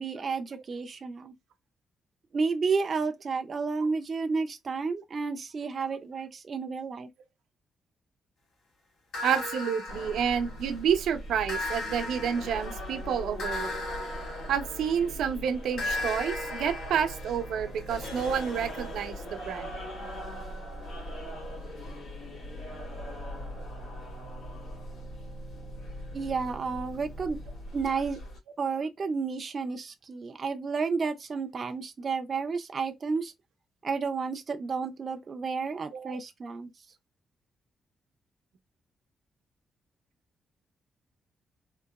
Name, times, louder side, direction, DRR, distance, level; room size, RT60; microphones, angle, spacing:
voice 1, 0.0-1.3 2.3-7.1 26.1-27.4 27.7-28.2 28.6-33.3 33.8-36.7, right 4 dB, 30° right, 0.5 m, -31 dB
sound 1, 9.1-10.8 11.5-15.2 15.8-19.5, left 2 dB, 60° left, 2.4 m, -37 dB
voice 2, 9.2-13.7 14.5-19.8 35.9-36.2, right 8 dB, 85° right, 0.8 m, -29 dB
sound 2, 9.9-28.4, equal, 80° left, 2.6 m, -40 dB
4.0 x 2.9 x 2.3 m
wide cardioid pair, 170°, 0 cm